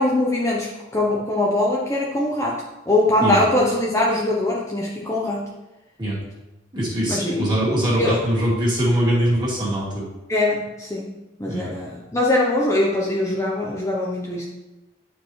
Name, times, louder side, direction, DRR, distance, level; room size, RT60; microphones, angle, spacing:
voice 1, 0.0-5.5 7.1-7.5 8.0-8.2 10.3-11.1 11.4-14.4, left 1 dB, 15° left, -3 dB, 0.6 m, -22 dB
voice 2, 6.7-10.1 11.5-11.7, right 1 dB, 25° right, -6 dB, 2.2 m, -22 dB
9.8 x 4.8 x 3.1 m, 1.0 s
head